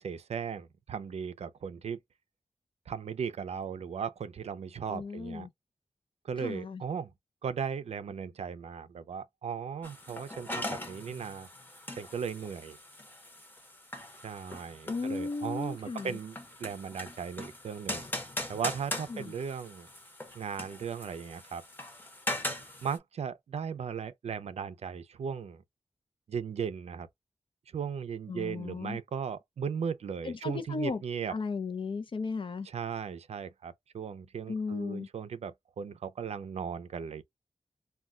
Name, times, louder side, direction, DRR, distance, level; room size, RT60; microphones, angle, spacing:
voice 1, 0.0-2.0 2.9-5.5 6.2-7.1 7.4-11.5 11.9-12.8 14.2-18.0 18.5-19.9 20.4-21.6 22.8-25.6 26.3-27.1 27.7-31.3 32.6-37.2, right 7 dB, 80° right, 0.4 m, -37 dB
voice 2, 4.9-5.5 6.4-6.8 14.9-16.2 19.1-19.3 28.3-29.0 30.3-31.0 31.3-32.7 34.5-35.1, left 4 dB, 55° left, 0.6 m, -35 dB
sound 1, 9.8-23.0, left 1 dB, 20° left, 0.8 m, -41 dB
2.3 x 2.1 x 3.6 m
wide cardioid pair, 105°, 11 cm